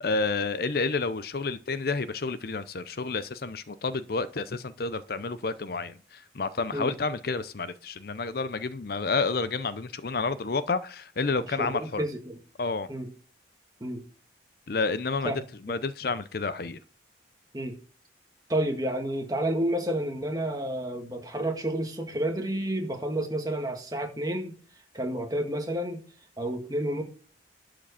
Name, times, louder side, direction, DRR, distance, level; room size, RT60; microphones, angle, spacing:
voice 1, 0.0-12.0 12.6-12.9 14.7-15.3 15.6-16.8, left 4 dB, 55° left, 0.6 m, -30 dB
voice 2, 11.6-12.4 12.9-13.1 13.8-14.0 15.2-15.4 17.5-17.8 18.5-24.6 24.9-26.0 26.4-27.0, right 1 dB, 20° right, 1.8 m, -30 dB
11.5 x 5.1 x 6.8 m
head